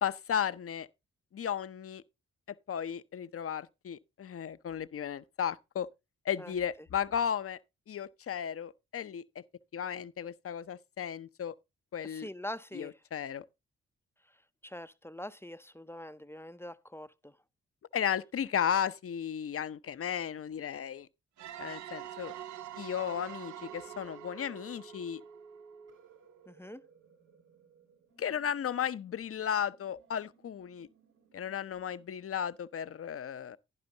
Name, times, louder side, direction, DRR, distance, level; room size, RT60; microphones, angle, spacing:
voice 1, 0.0-0.9 1.3-2.0 2.7-5.9 6.2-7.6 7.9-9.4 9.7-11.5 11.9-12.3 12.7-13.4 17.9-21.1 21.6-22.3 22.8-25.2 28.2-30.9 31.3-33.6, left 8 dB, 45° left, 0.7 m, -34 dB
voice 2, 12.0-12.9 14.6-17.3 26.5-26.8, left 1 dB, 10° left, 0.6 m, -44 dB
sound 1, 21.4-26.0, right 12 dB, 65° right, 0.6 m, -46 dB
sound 2, 22.1-32.1, right 5 dB, 85° right, 3.7 m, -58 dB
11.0 x 10.5 x 2.7 m
supercardioid pair, 45°, 31 cm